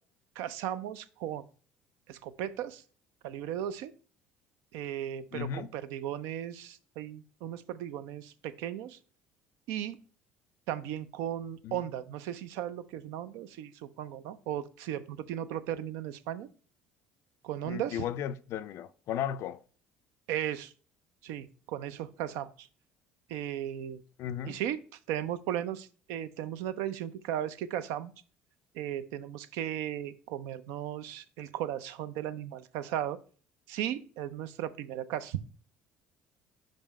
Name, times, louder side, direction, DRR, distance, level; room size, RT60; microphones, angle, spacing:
voice 1, 0.4-1.4 2.1-2.8 3.2-3.9 4.7-9.0 9.7-10.0 10.7-16.5 17.4-18.0 20.3-20.7 21.2-22.7 23.3-24.0 24.5-24.8 25.1-28.1 28.7-33.2 33.7-35.4, right 11 dB, 65° right, 0.4 m, -36 dB
voice 2, 5.3-5.7 11.6-11.9 17.6-19.6 24.2-24.6, left 10 dB, 55° left, 0.4 m, -35 dB
5.2 x 5.2 x 4.1 m
hypercardioid pair, 60°, 5 cm